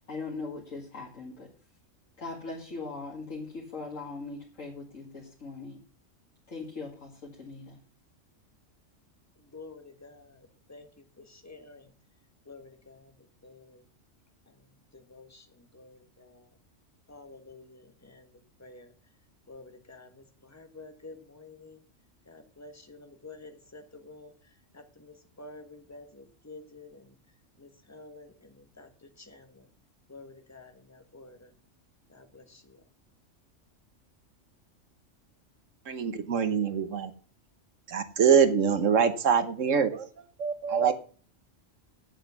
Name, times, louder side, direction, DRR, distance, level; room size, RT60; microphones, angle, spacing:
voice 1, 0.1-1.5 2.2-5.8 6.5-7.8, left 3 dB, 90° left, 2.5 m, -40 dB
voice 2, 9.5-10.4 10.7-10.9 11.2-11.9 12.5-13.1 13.4-13.8 14.9-15.5 15.7-16.4 17.1-18.3 18.6-18.9 19.5-21.8 22.3-24.3 24.7-27.1 27.6-28.9 29.2-29.7 30.1-31.5 32.1-32.8, left 3 dB, 15° left, 1.3 m, -50 dB
voice 3, 35.9-37.1 37.9-40.1 40.4-40.9, right 6 dB, 80° right, 1.4 m, -24 dB
8.1 x 7.8 x 7.0 m
omnidirectional pair, 1.3 m